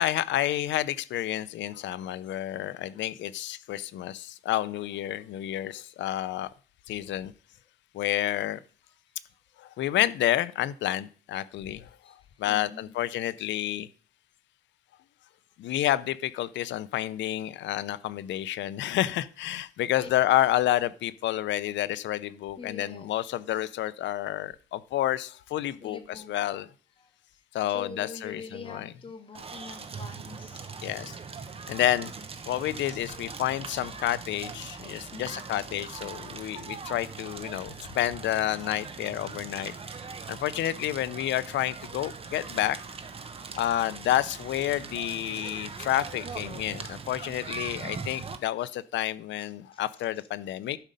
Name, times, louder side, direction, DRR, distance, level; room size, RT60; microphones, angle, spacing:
voice 1, 0.0-6.5 6.9-7.3 7.9-8.6 9.6-11.9 12.4-13.9 15.6-26.7 27.5-28.9 30.8-31.1 31.7-32.1 32.5-39.7 40.3-42.8 43.6-50.8, left 13 dB, 75° left, 16 dB, 0.6 m, -29 dB
voice 2, 12.0-12.9 20.0-20.1 22.6-23.1 25.8-26.3 27.0-27.1 27.7-30.6 35.1-35.5 40.2-40.3 48.6-48.7 49.3-49.8, left 4 dB, 30° left, 5 dB, 1.6 m, -45 dB
Crackle, 29.3-48.4, right 5 dB, 30° right, 1.0 m, -41 dB
11.5 x 5.1 x 5.4 m, 0.42 s
cardioid pair, 125°, 19 cm